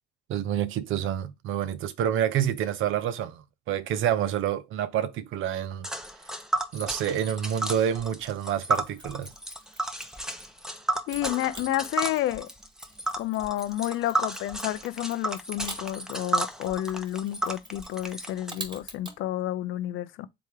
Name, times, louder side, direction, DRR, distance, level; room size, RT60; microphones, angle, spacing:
voice 1, 0.3-5.9 6.7-9.3, right 10 dB, 85° right, 0.6 m, -28 dB
Tick, 5.8-18.5, right 2 dB, 5° right, 0.7 m, -32 dB
Mechanisms, 8.7-10.6 11.1-19.2, right 2 dB, 25° right, 1.4 m, -47 dB
voice 2, 11.1-12.5 13.2-20.3, left 14 dB, 85° left, 0.6 m, -30 dB
3.6 x 3.0 x 4.6 m
cardioid pair, 90°, 20 cm